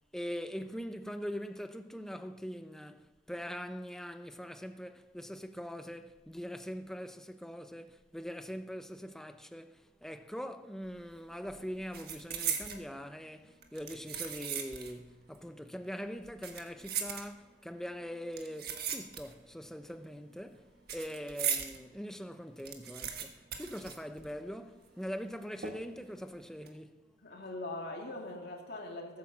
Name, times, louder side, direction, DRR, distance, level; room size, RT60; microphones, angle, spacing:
voice 1, 0.1-26.9, equal, 5° left, 0.7 m, -42 dB
sound 1, 10.9-11.2 11.4-12.9 13.6-15.0 15.3-15.4 16.2-17.7 18.3-19.5 19.8-21.8 22.2-22.3 22.5-24.6 24.8-24.9 25.6-26.1 26.5-26.7, right 8 dB, 55° right, 1.5 m, -38 dB
voice 2, 27.2-29.2, left 2 dB, 55° left, 2.4 m, -41 dB
17.0 x 9.4 x 7.3 m
head